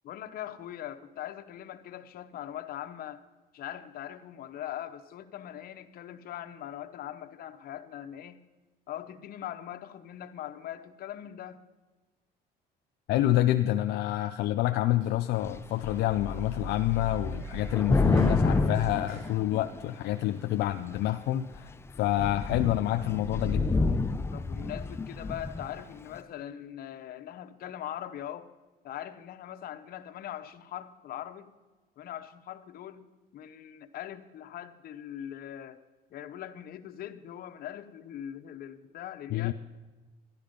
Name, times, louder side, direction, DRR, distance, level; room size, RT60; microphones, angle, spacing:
voice 1, 0.0-3.2 3.5-8.4 8.9-11.6 24.3-28.5 28.8-31.5 32.0-33.1 33.3-35.8 36.1-39.5, left 11 dB, 60° left, 9 dB, 0.9 m, -41 dB
voice 2, 13.1-23.7 39.3-39.5, left 14 dB, 80° left, 7 dB, 0.5 m, -28 dB
Sliding door, 14.7-20.3, equal, 90° right, 4.9 m, -50 dB
Thunder / Rain, 15.4-15.6 15.8-20.0 20.7-21.1 21.5-21.7 22.0-25.7, left 3 dB, 15° left, 0.5 m, -29 dB
12.0 x 11.5 x 5.2 m, 1.2 s
cardioid pair, 110°, 17 cm